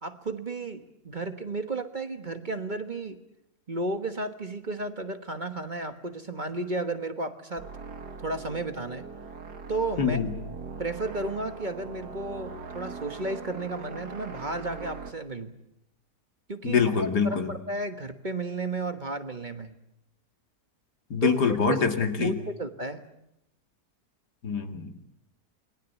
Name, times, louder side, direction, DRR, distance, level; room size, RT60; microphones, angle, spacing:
voice 1, 0.0-3.2 3.7-7.7 8.2-9.1 9.7-10.2 10.8-15.6 16.5-19.7 21.2-21.8 22.2-23.1, right 2 dB, 30° right, 8 dB, 1.3 m, -33 dB
sound 1, 7.6-15.1, right 4 dB, 80° right, 2.3 m, -41 dB
voice 2, 10.0-10.3 16.6-17.5 21.1-22.3 24.4-25.0, left 6 dB, 85° left, 6 dB, 2.6 m, -25 dB
28.5 x 21.0 x 8.3 m, 0.82 s
omnidirectional pair, 1.7 m